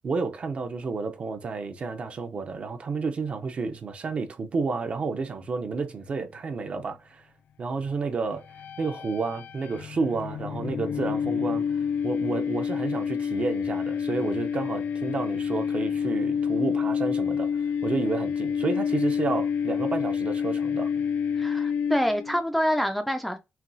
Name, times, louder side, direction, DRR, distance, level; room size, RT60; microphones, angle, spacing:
voice 1, 0.0-7.2 7.6-8.4 8.8-20.9, right 4 dB, 40° right, 0.6 m, -31 dB
sound 1, 8.4-22.4, left 7 dB, 75° left, 0.4 m, -28 dB
voice 2, 21.4-23.4, equal, 5° left, 0.4 m, -26 dB
5.7 x 2.3 x 2.7 m
wide cardioid pair, 150°, 3 cm